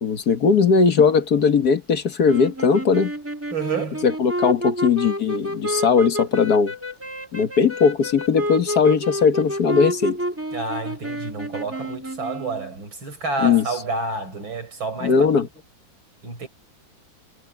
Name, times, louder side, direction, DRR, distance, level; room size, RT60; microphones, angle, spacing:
voice 1, 0.0-3.1 4.0-6.7 7.3-10.2 13.4-13.6 15.0-15.5, left 5 dB, 55° left, 2.0 m, -19 dB
sound 1, 2.2-12.7, equal, 5° right, 2.1 m, -29 dB
voice 2, 3.5-4.1 10.5-15.3 16.2-16.5, right 3 dB, 85° right, 6.0 m, -29 dB
omnidirectional pair, 2.1 m